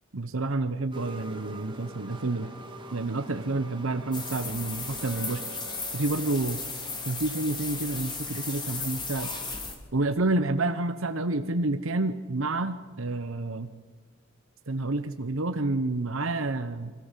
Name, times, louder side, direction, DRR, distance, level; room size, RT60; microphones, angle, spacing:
voice 1, 0.1-2.5 2.9-5.6 5.9-6.6 7.1-9.3 9.9-13.7 14.7-16.9, right 2 dB, 70° right, 8 dB, 1.0 m, -29 dB
sound 1, 0.9-6.4, right 2 dB, 25° right, 2.4 m, -45 dB
sound 2, 4.1-9.8, left 3 dB, 20° left, 3.4 m, -35 dB
Chink clink, 5.0-9.4, right 7 dB, 55° right, 3.8 m, -51 dB
25.5 x 15.0 x 7.5 m, 1.5 s
head